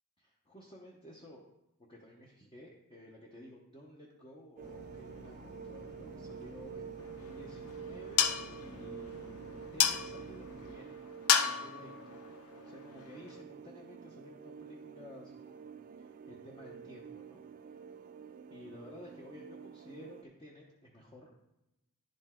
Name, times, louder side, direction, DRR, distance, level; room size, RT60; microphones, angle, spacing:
voice 1, 0.2-1.5 1.9-11.0 11.4-12.2 12.6-17.7 18.5-21.3, equal, 25° left, -3 dB, 0.9 m, -53 dB
sound 1, 4.6-10.7, equal, 50° left, 0.9 m, -52 dB
sound 2, 4.6-20.2, right 6 dB, 40° right, 0.3 m, -49 dB
sound 3, 7.0-13.4, left 8 dB, 70° left, 0.6 m, -34 dB
10.5 x 5.2 x 3.7 m, 0.91 s
head